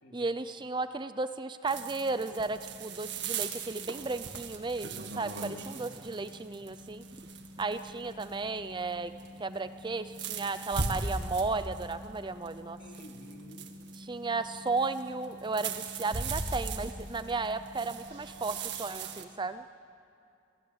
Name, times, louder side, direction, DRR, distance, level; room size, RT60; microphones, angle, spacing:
voice 1, 0.1-7.0 7.6-9.1 9.4-12.8 14.0-19.6, right 3 dB, 25° right, 11 dB, 0.6 m, -34 dB
sound 1, 1.7-19.2, right 4 dB, 60° right, 1.9 m, -40 dB
voice 2, 5.5-6.1 12.8-13.7, equal, 50° left, 2 dB, 3.1 m, -51 dB
28.5 x 18.5 x 8.9 m, 2.5 s
head